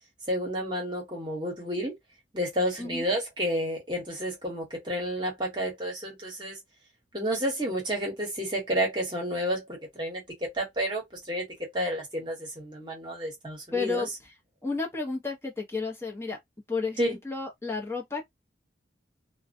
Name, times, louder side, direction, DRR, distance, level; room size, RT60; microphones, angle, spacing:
voice 1, 0.3-1.9 2.3-6.6 7.1-11.5 11.7-14.1 17.0-17.2, equal, 25° right, 1.2 m, -30 dB
voice 2, 13.7-14.1 14.6-16.4 16.7-18.2, left 4 dB, 15° left, 0.8 m, -32 dB
2.4 x 2.2 x 2.5 m
head